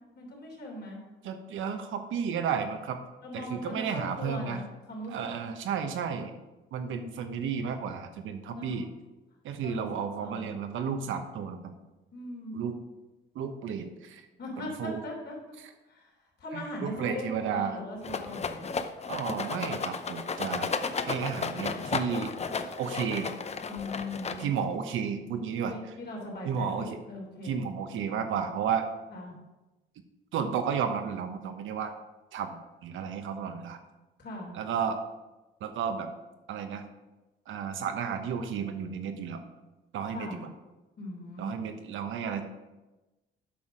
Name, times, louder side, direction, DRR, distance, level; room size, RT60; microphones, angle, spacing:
voice 1, 0.1-1.0 3.2-5.2 8.5-8.8 9.6-9.9 10.2-10.6 12.1-12.7 14.4-15.5 15.9-16.1 16.4-18.7 23.7-24.5 25.7-27.7 29.1-29.3 34.2-34.5 40.1-40.4 41.0-41.5, left 1 dB, 60° left, -1 dB, 3.2 m, -39 dB
voice 2, 1.2-3.0 3.3-4.6 5.1-6.3 6.7-8.9 9.4-11.7 12.5-12.7 13.3-14.3 14.6-15.0 16.5-17.8 19.1-20.7 21.1-22.3 22.8-23.3 24.4-25.9 26.4-27.0 27.4-28.9 30.3-31.9 32.3-33.8 34.5-35.0 35.6-36.1 36.5-36.9 37.5-39.4 39.9-40.4 41.4-42.4, right 7 dB, 80° right, 7 dB, 1.0 m, -32 dB
Rattle, 18.0-24.7, left 5 dB, 35° left, 0.6 m, -34 dB
8.6 x 5.9 x 5.0 m, 1.1 s
cardioid pair, 90°, 20 cm